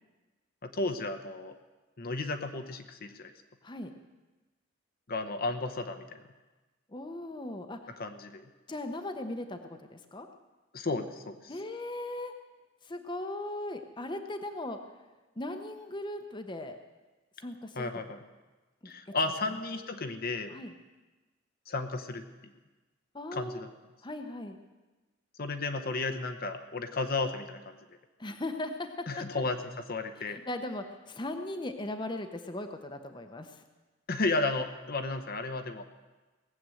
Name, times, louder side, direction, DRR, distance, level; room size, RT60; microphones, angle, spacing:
voice 1, 0.6-1.5 2.0-3.3 5.1-6.2 8.0-8.4 10.7-11.5 17.8-18.2 18.8-20.5 21.7-22.2 23.3-23.7 25.4-27.8 29.1-30.4 34.1-35.8, left 3 dB, 50° left, 7 dB, 0.9 m, -33 dB
voice 2, 6.9-7.8 8.7-9.6 9.9-10.3 11.5-12.3 12.9-14.8 15.4-16.8 17.4-17.9 18.8-18.9 20.5-20.7 23.1-23.6 24.0-24.6 28.2-29.4 30.3-33.5, left 1 dB, 25° left, 6 dB, 0.9 m, -38 dB
18.0 x 7.8 x 7.8 m, 1.2 s
head